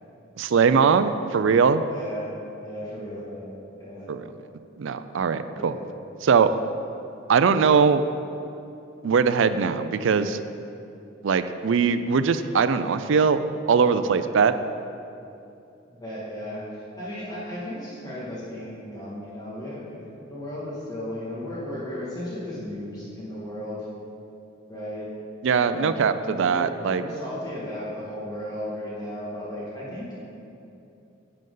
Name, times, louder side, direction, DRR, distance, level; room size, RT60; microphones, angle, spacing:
voice 1, 0.4-1.8 4.1-4.2 4.8-5.7 6.2-6.5 7.3-8.0 9.0-10.4 11.2-13.4 13.7-14.5 25.4-27.0, right 5 dB, 70° right, 11 dB, 0.4 m, -21 dB
voice 2, 1.9-2.3 2.6-4.1 5.5-5.9 15.9-23.9 24.7-25.1 25.6-30.3, left 1 dB, 20° left, -8 dB, 1.9 m, -35 dB
10.5 x 7.7 x 3.9 m, 2.7 s
head